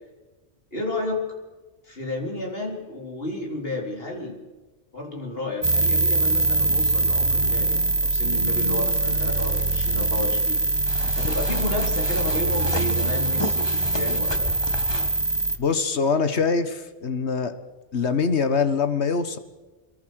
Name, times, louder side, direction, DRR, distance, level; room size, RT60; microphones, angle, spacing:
voice 1, 0.7-1.3 1.8-4.4 4.9-10.7 11.2-14.5, left 2 dB, 60° left, 1 dB, 4.3 m, -31 dB
sound 1, 5.6-15.6, right 2 dB, 25° right, 1.4 m, -23 dB
sound 2, 10.9-15.2, left 2 dB, 25° left, 1.7 m, -33 dB
voice 2, 15.6-17.5 17.9-19.4, left 5 dB, 85° left, 11 dB, 1.8 m, -23 dB
25.5 x 22.5 x 6.5 m, 1.2 s
omnidirectional pair, 1.1 m